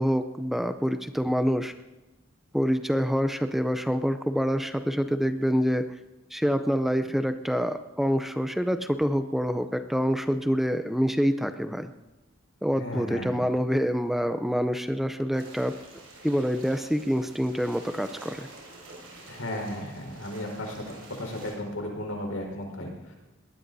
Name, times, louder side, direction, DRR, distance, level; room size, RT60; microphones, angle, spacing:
voice 1, 0.0-1.7 2.5-5.8 6.3-11.9 12.6-15.8 16.2-18.5, equal, ahead, 8 dB, 0.5 m, -26 dB
voice 2, 12.8-13.4 19.3-20.8 21.2-23.1, left 1 dB, 80° left, 1 dB, 4.6 m, -35 dB
sound 1, 15.3-21.5, right 2 dB, 70° right, 6.8 m, -47 dB
21.5 x 19.0 x 2.7 m, 1.1 s
head